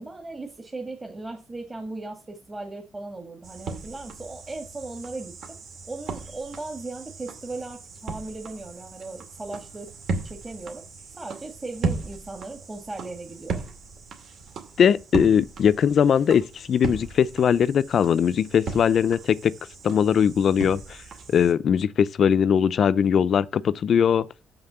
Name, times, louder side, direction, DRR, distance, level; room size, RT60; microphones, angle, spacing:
voice 1, 0.0-5.3 5.9-9.9 10.2-10.8 11.2-13.6, right 2 dB, 20° right, 1.6 m, -37 dB
sound 1, 3.4-21.5, right 4 dB, 65° right, 2.1 m, -37 dB
voice 2, 14.8-19.5 19.8-21.0 21.3-24.3, left 8 dB, 60° left, 0.4 m, -20 dB
6.8 x 5.8 x 6.7 m
cardioid pair, 90°, 0 cm